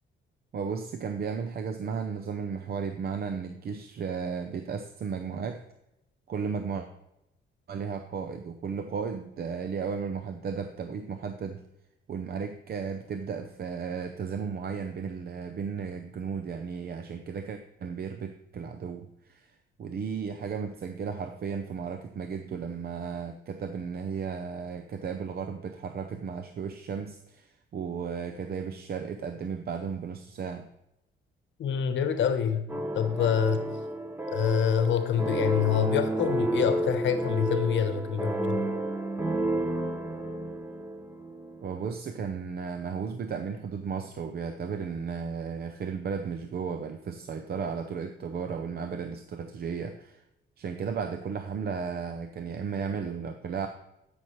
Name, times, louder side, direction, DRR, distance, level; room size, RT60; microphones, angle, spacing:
voice 1, 0.5-5.6 6.3-6.9 7.7-11.6 12.1-19.5 19.8-30.7 41.6-50.2 50.6-53.7, right 6 dB, 50° right, 0.7 m, -34 dB
voice 2, 31.6-32.7 32.9-33.6 34.3-38.6, left 8 dB, 70° left, 0.9 m, -26 dB
sound 1, 32.7-41.7, right 1 dB, 10° right, 1.0 m, -31 dB
12.5 x 6.1 x 3.1 m
cardioid pair, 90°, 20 cm